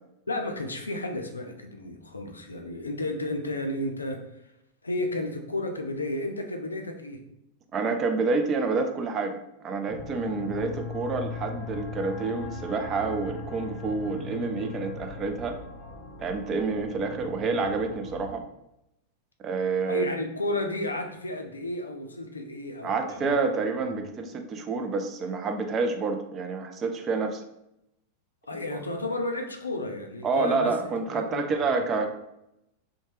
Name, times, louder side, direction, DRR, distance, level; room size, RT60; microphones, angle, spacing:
voice 1, 0.3-4.4 4.8-7.2 16.7-16.8 19.9-23.4 28.5-30.7 31.1-31.5, left 1 dB, 75° left, 4 dB, 0.4 m, -32 dB
voice 2, 7.7-15.6 16.2-18.4 19.4-20.1 22.8-27.4 28.7-28.8 30.2-32.1, right 4 dB, 25° right, 5 dB, 0.3 m, -28 dB
sound 1, 9.9-18.3, left 4 dB, 35° left, 0.8 m, -39 dB
2.7 x 2.1 x 3.1 m, 0.84 s
figure-of-eight pair, 90°, 0 cm